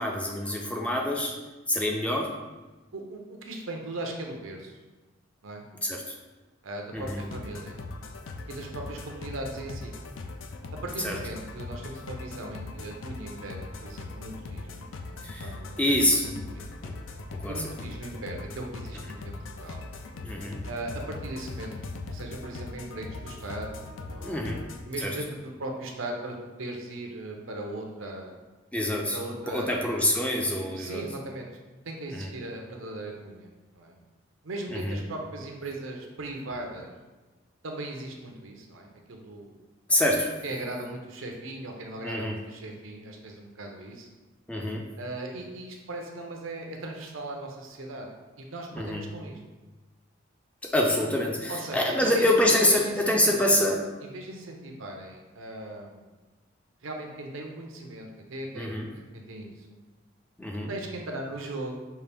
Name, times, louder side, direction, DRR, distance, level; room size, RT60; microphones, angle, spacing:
voice 1, 0.0-1.3 1.7-2.3 5.8-6.1 6.9-7.2 11.0-11.2 15.2-15.5 15.8-16.2 16.8-16.9 17.3-17.6 20.2-20.6 24.2-24.6 25.0-25.1 28.7-29.2 29.5-31.0 32.1-32.3 34.7-35.0 39.9-40.3 42.0-42.4 44.5-44.8 48.7-49.1 50.6-53.8 58.5-58.9 60.4-60.7, left 1 dB, 5° left, 0 dB, 0.4 m, -26 dB
voice 2, 2.9-4.7 5.4-5.6 6.6-7.8 8.5-9.9 10.8-16.7 17.5-19.8 20.6-23.8 24.1-24.5 24.9-28.4 29.1-30.0 30.8-31.5 31.8-34.0 34.4-36.9 37.6-39.6 40.4-44.1 45.0-48.1 48.4-49.4 51.5-53.7 54.0-56.1 56.8-58.7 58.9-59.8 60.7-61.7, right 2 dB, 85° right, 2 dB, 0.7 m, -38 dB
sound 1, 7.0-24.8, left 3 dB, 75° left, 0.4 m, -40 dB
5.6 x 2.5 x 3.4 m, 1.2 s
head